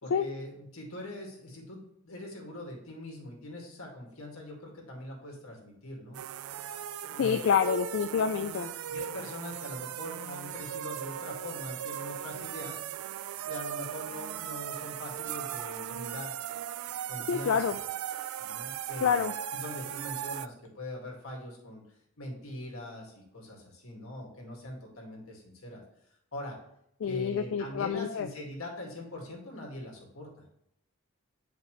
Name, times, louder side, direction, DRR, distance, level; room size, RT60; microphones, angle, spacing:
voice 1, 0.0-6.2 7.1-7.4 8.8-12.8 13.5-16.4 17.1-17.8 18.4-21.8 22.2-25.8 26.3-26.6 27.1-30.3, left 1 dB, 85° left, -1 dB, 2.1 m, -42 dB
sound 1, 6.1-20.5, right 10 dB, 90° right, 0.3 m, -38 dB
voice 2, 7.2-8.7 17.3-17.8 19.0-19.3 27.0-28.3, left 7 dB, 65° left, 8 dB, 0.3 m, -27 dB
8.3 x 5.0 x 3.2 m, 0.76 s
head